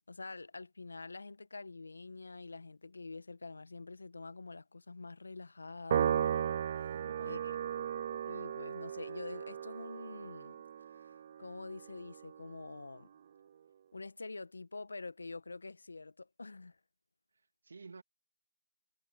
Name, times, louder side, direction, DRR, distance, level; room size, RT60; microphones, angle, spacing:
voice 1, 0.0-6.3 6.7-6.9 7.2-7.4 8.3-10.6 11.4-13.1 13.9-16.8, left 3 dB, 50° left, 1.8 m, -46 dB
Piano, 5.9-12.5, right 9 dB, 20° right, 0.5 m, -36 dB
voice 2, 6.9-7.6 17.3-18.0, right 4 dB, 35° right, 2.6 m, -52 dB
figure-of-eight pair, 175°, 0 cm